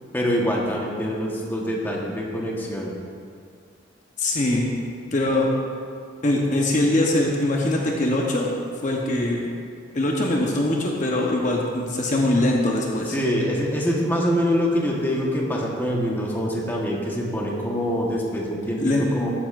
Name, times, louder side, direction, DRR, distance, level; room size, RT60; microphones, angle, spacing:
voice 1, 0.1-2.9 13.1-19.3, equal, 10° left, -2 dB, 1.2 m, -25 dB
voice 2, 4.2-4.7 5.1-5.5 6.2-8.5 8.8-9.5 9.9-13.1 18.8-19.0, left 1 dB, 40° left, -1 dB, 0.9 m, -22 dB
14.0 x 9.9 x 2.5 m, 2.2 s
head